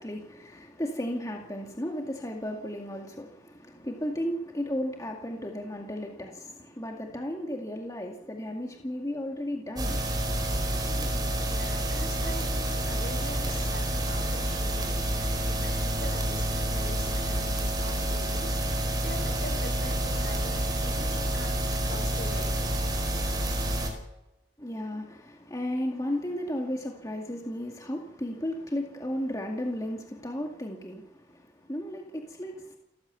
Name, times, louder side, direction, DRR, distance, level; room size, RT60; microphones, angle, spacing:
voice 1, 0.0-10.0 24.6-32.8, left 1 dB, 20° left, 2.2 m, -34 dB
sound 1, 9.8-23.9, right 1 dB, 25° right, 4.9 m, -28 dB
voice 2, 10.7-21.5 21.8-22.7, left 2 dB, 65° left, 6.1 m, -43 dB
29.0 x 14.5 x 7.0 m
head